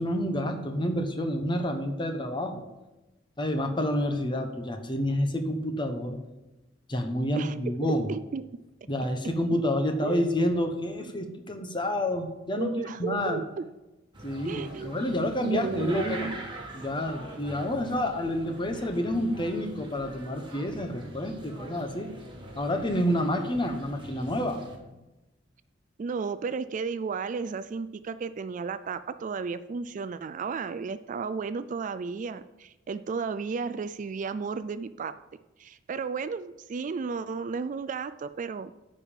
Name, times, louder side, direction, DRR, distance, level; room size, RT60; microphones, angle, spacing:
voice 1, 0.0-2.7 3.4-6.2 6.9-8.1 8.9-12.7 13.0-13.4 14.2-16.4 16.7-22.1 22.5-24.6, left 1 dB, 25° left, 6 dB, 1.0 m, -29 dB
voice 2, 7.8-8.4 10.0-10.4 11.3-11.4 12.6-13.6 14.4-14.9 15.4-16.4 26.0-35.2 35.6-38.7, right 5 dB, 40° right, 13 dB, 0.3 m, -33 dB
sound 1, 14.1-24.8, right 1 dB, 25° right, 1.7 m, -43 dB
9.2 x 5.4 x 7.3 m, 1.0 s
head